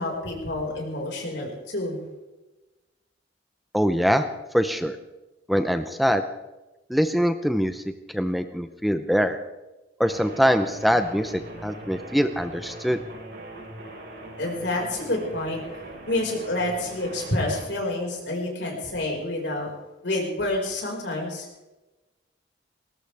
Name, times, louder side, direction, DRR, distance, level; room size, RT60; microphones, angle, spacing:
voice 1, 0.0-2.0 14.4-15.6 16.1-19.7 20.0-21.5, left 1 dB, 70° left, 0 dB, 5.2 m, -28 dB
voice 2, 3.7-4.3 4.5-5.0 5.5-6.2 6.9-7.8 8.1-9.4 10.0-13.0, equal, ahead, 8 dB, 0.7 m, -23 dB
sound 1, 10.0-17.7, right 1 dB, 65° right, 5.1 m, -41 dB
20.0 x 18.5 x 3.5 m, 1.1 s
head